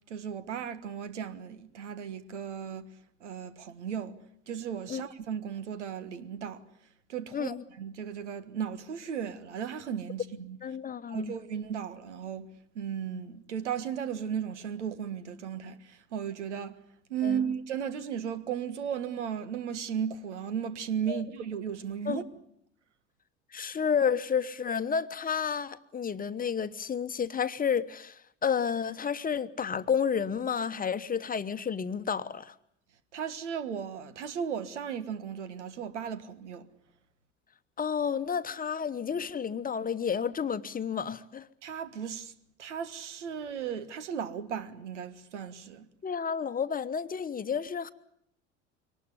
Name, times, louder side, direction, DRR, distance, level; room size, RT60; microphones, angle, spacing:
voice 1, 0.1-2.9 3.2-4.2 4.5-6.6 7.1-10.6 11.1-12.5 12.7-16.8 17.1-22.2 33.1-36.7 41.6-42.3 42.6-45.9, right 8 dB, 75° right, 1.6 m, -35 dB
voice 2, 7.3-7.6 10.6-11.3 17.2-17.5 21.1-21.2 22.0-22.2 23.5-32.5 37.8-41.5 46.0-47.9, left 7 dB, 25° left, 1.1 m, -31 dB
23.5 x 19.0 x 9.7 m
figure-of-eight pair, 65°, 35 cm